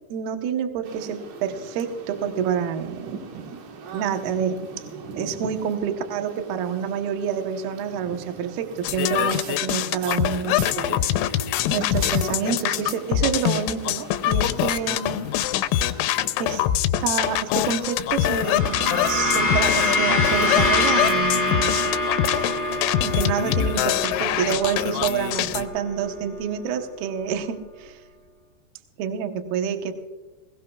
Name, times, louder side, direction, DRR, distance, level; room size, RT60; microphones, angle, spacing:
voice 1, 0.1-3.6 3.9-4.6 5.2-11.1 11.7-15.2 16.4-16.6 17.0-21.9 23.0-28.0 29.0-29.9, right 7 dB, 70° right, 6 dB, 2.5 m, -28 dB
sound 1, 0.8-16.3, right 5 dB, 85° right, 4.0 m, -41 dB
sound 2, 8.8-25.7, left 12 dB, 90° left, 3.1 m, -24 dB
sound 3, 18.1-26.6, left 2 dB, 5° right, 1.7 m, -25 dB
21.5 x 18.5 x 2.3 m, 1.2 s
omnidirectional pair, 5.4 m